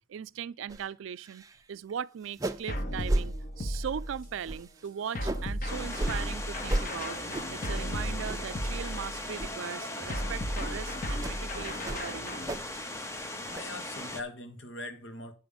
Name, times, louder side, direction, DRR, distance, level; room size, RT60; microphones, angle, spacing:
voice 1, 0.1-7.2 7.5-12.4, right 8 dB, 85° right, 0.4 m, -39 dB
sound 1, 0.7-0.9 1.2-1.6 1.9-2.0 2.3-2.7 3.1-3.3 3.7-4.0 4.4-5.5 5.9-6.2 6.7-6.9 7.3-7.6 8.1-8.6 8.9-9.1 9.4-9.6 10.0-10.2 10.6-10.8 11.2-11.4 11.8-12.8 13.1-13.6, right 1 dB, 20° right, 0.5 m, -34 dB
sound 2, 2.7-4.4 5.1-9.3 10.1-12.6, equal, 45° left, 1.1 m, -35 dB
sound 3, 5.7-14.2, left 1 dB, 15° left, 0.7 m, -39 dB
voice 2, 13.0-15.3, left 2 dB, 75° left, 1.4 m, -42 dB
8.9 x 5.1 x 7.0 m
head